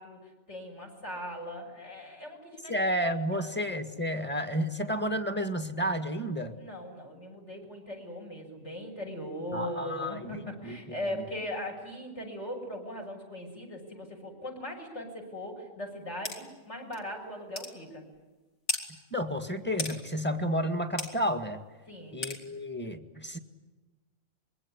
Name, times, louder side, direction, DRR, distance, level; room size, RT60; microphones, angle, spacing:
voice 1, 0.0-2.7 3.3-3.5 6.5-18.0 21.9-22.2, left 1 dB, 55° left, 4 dB, 7.0 m, -39 dB
voice 2, 2.7-6.5 9.5-10.3 10.6-10.8 19.1-21.6 22.1-23.4, equal, 10° left, 8 dB, 1.9 m, -31 dB
sound 1, 16.3-16.4 16.9-17.0 17.6-17.7 18.7-18.8 19.8-20.0 21.0-21.1 22.2-22.4, left 2 dB, 75° left, 3.9 m, -33 dB
26.0 x 22.5 x 9.9 m, 1.2 s
omnidirectional pair, 1.4 m